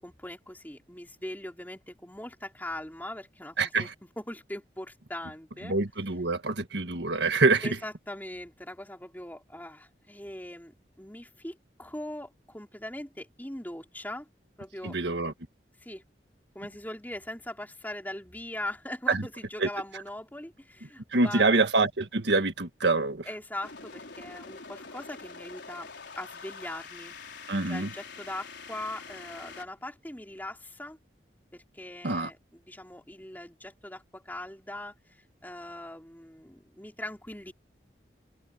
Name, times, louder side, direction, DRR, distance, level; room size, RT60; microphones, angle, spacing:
voice 1, 0.0-3.9 4.2-5.8 7.6-14.3 14.6-15.0 15.8-16.0 16.6-21.5 23.3-25.9 26.2-27.2 27.7-31.0 31.5-35.2 35.4-37.5, left 1 dB, 10° left, 3.7 m, -41 dB
voice 2, 3.6-3.9 5.6-7.8 14.8-15.3 19.1-19.2 19.6-19.7 21.1-23.3 27.5-27.9 32.0-32.3, right 3 dB, 75° right, 1.7 m, -25 dB
sound 1, 23.6-29.7, left 4 dB, 80° left, 4.1 m, -45 dB
head